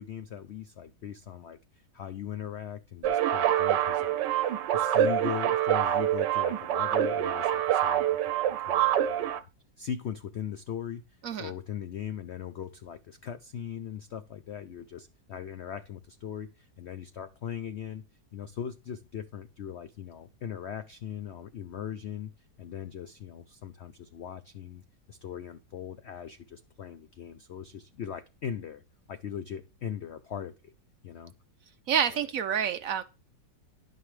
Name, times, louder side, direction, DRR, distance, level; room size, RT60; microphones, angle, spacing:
voice 1, 0.0-9.4 9.8-11.0 11.4-18.0 18.3-22.3 22.6-24.8 25.1-28.8 29.1-30.7 31.0-31.3 32.1-32.3, left 9 dB, 80° left, 0.6 m, -39 dB
sound 1, 3.0-9.4, right 11 dB, 90° right, 1.3 m, -26 dB
voice 2, 31.9-33.0, right 8 dB, 65° right, 0.9 m, -28 dB
11.0 x 9.3 x 3.3 m
omnidirectional pair, 1.9 m